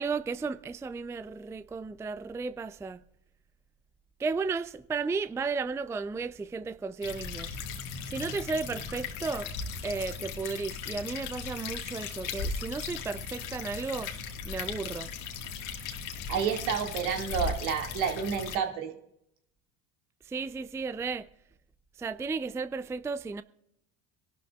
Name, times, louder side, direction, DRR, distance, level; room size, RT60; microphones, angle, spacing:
voice 1, 0.0-3.0 4.2-7.6 8.1-9.5 9.8-14.1 14.4-15.1 20.2-21.3 22.0-23.4, right 4 dB, 10° right, 0.4 m, -34 dB
sound 1, 7.0-18.6, left 5 dB, 60° left, 1.7 m, -37 dB
voice 2, 16.3-18.9, right 7 dB, 70° right, 2.0 m, -30 dB
24.0 x 12.0 x 2.3 m
hypercardioid pair, 75°, 35 cm